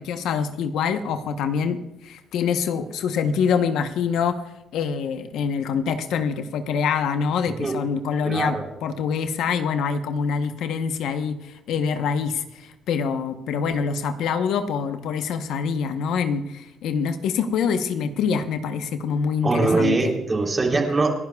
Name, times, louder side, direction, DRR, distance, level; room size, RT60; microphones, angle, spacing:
voice 1, 0.0-4.4 4.7-20.1, left 6 dB, 85° left, 8 dB, 0.9 m, -25 dB
voice 2, 8.2-8.7 19.4-21.2, right 3 dB, 30° right, 1 dB, 3.4 m, -22 dB
29.0 x 11.0 x 2.3 m, 0.89 s
cardioid pair, 90°, 0 cm